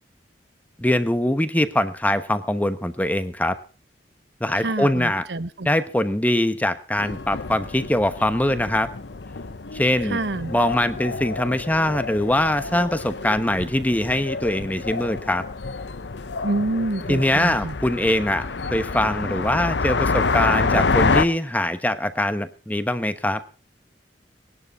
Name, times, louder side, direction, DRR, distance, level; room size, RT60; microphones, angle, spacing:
voice 1, 0.8-3.6 4.4-5.2 5.6-8.9 9.7-10.2 10.5-15.5 17.1-23.4, left 1 dB, 10° left, 11 dB, 1.1 m, -22 dB
voice 2, 4.5-5.7 10.0-10.5 16.4-17.7, right 2 dB, 70° right, 13 dB, 1.0 m, -27 dB
sound 1, 7.0-21.2, left 4 dB, 75° left, 0.8 m, -28 dB
19.5 x 11.0 x 5.5 m, 0.35 s
head